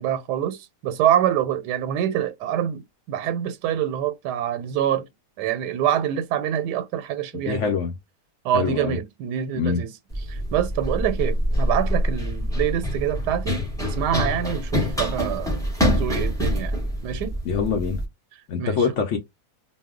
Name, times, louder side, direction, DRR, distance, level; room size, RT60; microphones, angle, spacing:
voice 1, 0.0-2.8 3.1-5.1 5.4-7.7 8.4-9.9 10.3-15.6 15.9-16.7 17.0-17.3 18.6-18.9, right 10 dB, 90° right, 1.2 m, -25 dB
voice 2, 7.5-7.9 8.5-9.0 9.6-9.8 17.5-18.0 18.5-19.2, left 6 dB, 70° left, 0.7 m, -24 dB
Run, 10.1-18.0, equal, 5° left, 0.6 m, -25 dB
2.6 x 2.1 x 3.6 m
omnidirectional pair, 1.7 m